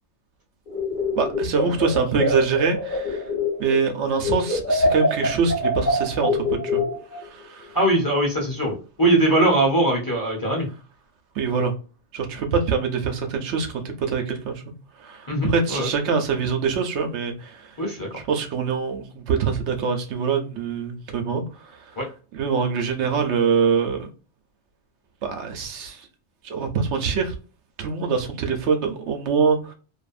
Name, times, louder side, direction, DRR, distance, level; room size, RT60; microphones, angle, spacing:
sound 1, 0.7-3.9 4.2-7.2, left 2 dB, 45° left, 1.2 m, -24 dB
voice 1, 1.2-3.2 3.6-6.8 7.1-7.8 11.4-11.7 12.1-14.7 15.0-17.8 18.3-22.0 22.3-24.1 25.2-26.1 26.4-27.3 27.8-29.7, right 5 dB, 75° right, 0.9 m, -24 dB
voice 2, 7.7-10.7 15.3-15.9 17.8-18.1 22.0-22.1, right 1 dB, 20° left, 0.9 m, -21 dB
2.6 x 2.4 x 2.3 m
omnidirectional pair, 1.2 m